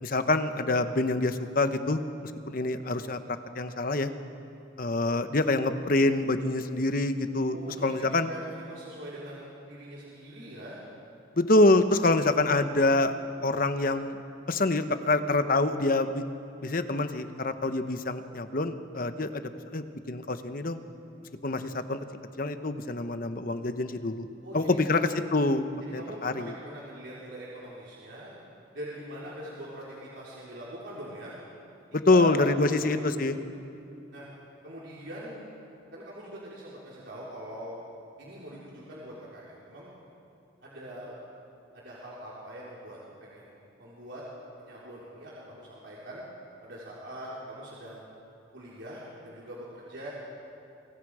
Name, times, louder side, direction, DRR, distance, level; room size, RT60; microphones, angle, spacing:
voice 1, 0.0-3.2 3.5-4.1 4.8-7.6 7.8-8.3 11.4-13.1 13.4-14.2 14.5-16.2 16.6-19.4 19.7-20.8 21.4-22.0 22.4-24.3 24.5-25.6 25.9-26.5 31.9-33.4, left 2 dB, 45° left, 9 dB, 1.0 m, -26 dB
voice 2, 7.5-10.8 24.4-25.1 26.0-28.3 28.7-31.4 32.1-33.1 34.1-34.3 34.6-35.4 35.9-37.9 38.2-39.9 40.6-41.1 41.7-44.2 44.6-46.2 46.6-48.1 48.5-50.1, right 1 dB, 70° right, -6 dB, 4.0 m, -43 dB
29.0 x 24.0 x 4.9 m, 2.7 s
head